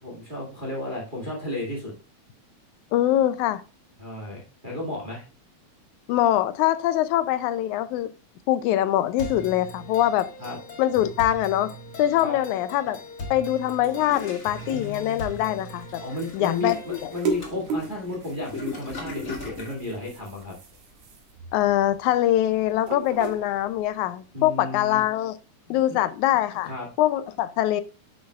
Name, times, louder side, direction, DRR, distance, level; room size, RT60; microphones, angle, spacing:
voice 1, 0.0-1.9 4.0-5.2 10.4-10.6 12.2-12.4 16.0-20.5 24.3-25.0 25.7-26.0 26.6-26.9, left 2 dB, 20° right, 1.7 m, -33 dB
voice 2, 2.9-3.6 6.1-8.1 8.5-10.3 10.8-11.7 12.0-13.0 13.3-16.0 16.3-17.1 21.5-25.4 25.7-26.7 27.0-27.8, left 13 dB, 85° left, 1.9 m, -23 dB
sound 1, 9.2-17.2, left 1 dB, 50° left, 2.5 m, -39 dB
Toilet flush, 13.6-19.8, left 2 dB, 30° left, 2.2 m, -40 dB
sound 2, 14.7-23.9, right 4 dB, 75° right, 2.9 m, -37 dB
9.4 x 6.3 x 2.3 m
omnidirectional pair, 3.4 m